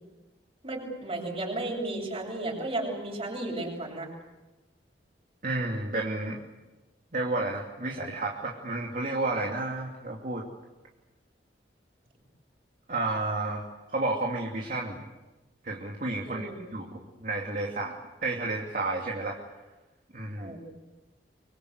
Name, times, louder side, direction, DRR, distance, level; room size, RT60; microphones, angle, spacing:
voice 1, 0.6-4.1 16.2-16.5 20.4-20.7, right 2 dB, 35° right, 0 dB, 7.9 m, -34 dB
voice 2, 5.4-6.4 7.1-10.5 12.9-15.0 15.6-18.0 18.2-19.4 20.1-20.5, right 2 dB, 50° right, 0 dB, 2.7 m, -31 dB
24.5 x 24.5 x 8.2 m, 1.1 s
head